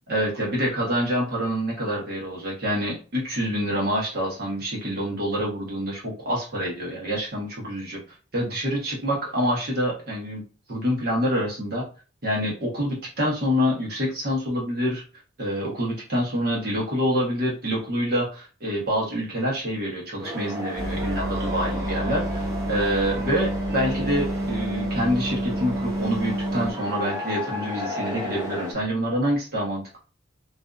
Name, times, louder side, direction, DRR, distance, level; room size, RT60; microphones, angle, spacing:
voice 1, 0.1-8.0 8.3-10.4 10.7-11.8 12.2-15.0 15.4-30.0, equal, 50° right, -3 dB, 0.9 m, -26 dB
sound 1, 20.2-28.7, equal, 20° right, 0.6 m, -35 dB
sound 2, 20.8-26.7, equal, 75° right, 1.2 m, -28 dB
2.5 x 2.4 x 2.3 m, 0.36 s
head